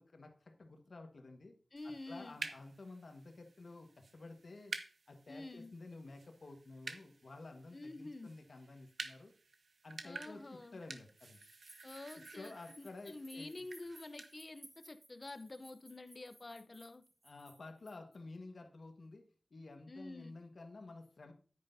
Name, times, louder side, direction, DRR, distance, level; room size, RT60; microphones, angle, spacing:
voice 1, 0.0-1.5 1.8-4.7 5.1-9.3 9.8-11.4 12.1-13.6 17.2-19.2 19.5-21.3, left 3 dB, 70° left, 1.5 m, -52 dB
voice 2, 1.7-2.4 5.3-5.7 7.7-8.3 10.0-10.8 11.8-17.0 19.9-20.4, left 2 dB, 45° left, 0.7 m, -48 dB
sound 1, 1.8-14.3, right 4 dB, 90° right, 0.9 m, -51 dB
sound 2, 11.2-18.2, right 1 dB, 35° right, 3.3 m, -61 dB
9.8 x 9.5 x 2.7 m
wide cardioid pair, 75°, 0 cm